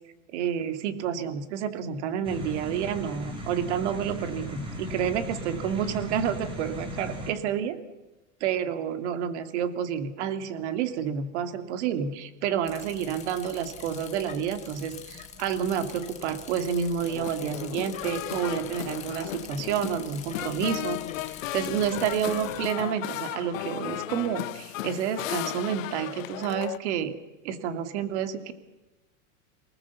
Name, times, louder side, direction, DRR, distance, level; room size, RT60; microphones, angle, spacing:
voice 1, 0.3-7.8 8.4-21.0 21.5-27.1 27.4-28.5, right 8 dB, 55° right, 9 dB, 2.4 m, -29 dB
sound 1, 2.2-7.3, equal, 15° right, 3.2 m, -37 dB
Bicycle, 12.6-22.7, left 8 dB, 15° left, 1.5 m, -45 dB
sound 2, 17.0-26.8, left 16 dB, 75° left, 0.9 m, -35 dB
28.0 x 19.5 x 7.1 m, 1.1 s
supercardioid pair, 170°, 40 cm